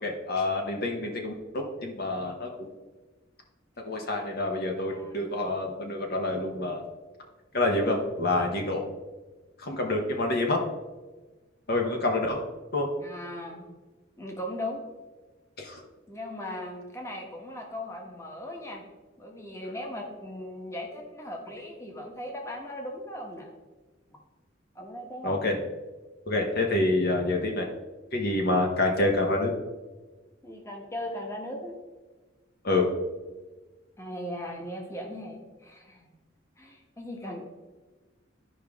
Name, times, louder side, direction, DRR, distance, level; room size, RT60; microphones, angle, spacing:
voice 1, 0.0-2.7 3.8-6.8 7.5-8.8 9.6-10.6 11.7-12.4 12.7-12.9 15.6-15.8 25.2-25.6 26.3-27.7 28.1-29.5 32.6-32.9, left 2 dB, 50° left, 2 dB, 1.0 m, -27 dB
voice 2, 4.9-5.3 13.0-13.7 14.2-14.8 16.1-18.8 19.2-23.5 24.7-25.4 30.4-31.7 34.0-36.1 36.6-37.5, left 1 dB, 15° left, 1 dB, 1.2 m, -38 dB
12.5 x 5.0 x 3.6 m, 1.3 s
head